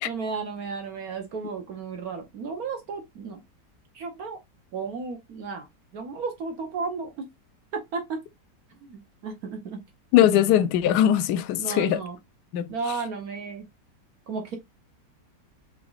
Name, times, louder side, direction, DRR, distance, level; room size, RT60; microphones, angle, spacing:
voice 1, 0.0-3.4 3.9-4.4 4.7-5.7 5.9-7.3 7.9-8.2 8.9-9.8 11.6-12.2 12.7-13.7 14.3-14.6, right 4 dB, 65° right, 1.2 m, -33 dB
voice 2, 10.1-12.0 12.5-12.7, left 11 dB, 75° left, 1.1 m, -20 dB
4.7 x 3.7 x 2.3 m
omnidirectional pair, 1.8 m